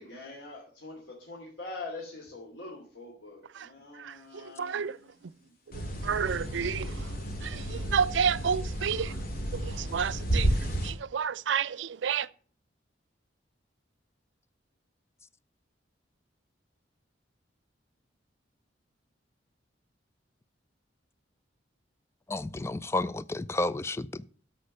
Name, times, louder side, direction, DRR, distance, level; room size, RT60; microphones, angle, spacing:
voice 1, 0.0-5.5 7.6-8.1, left 2 dB, 85° left, 2.9 m, -44 dB
voice 2, 4.4-5.0 6.0-6.9 7.4-9.1 9.5-10.6 10.8-12.3, right 7 dB, 75° right, 0.4 m, -30 dB
sound 1, 5.7-10.9, right 1 dB, 50° left, 2.7 m, -32 dB
voice 3, 22.3-24.3, left 2 dB, 15° left, 0.4 m, -31 dB
13.5 x 5.2 x 6.5 m
head